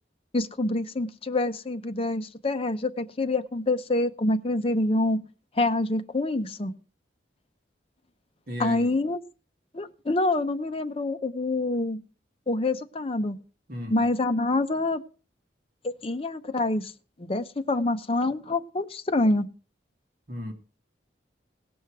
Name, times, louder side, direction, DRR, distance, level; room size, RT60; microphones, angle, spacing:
voice 1, 0.3-5.2 5.6-6.7 8.6-9.2 9.7-12.0 12.5-13.4 13.9-15.0 15.8-16.9 17.2-19.5, left 2 dB, 30° left, 0.7 m, -26 dB
voice 2, 8.5-9.0 13.7-14.1 20.3-20.5, equal, 55° right, 2.2 m, -35 dB
18.0 x 6.2 x 4.7 m
head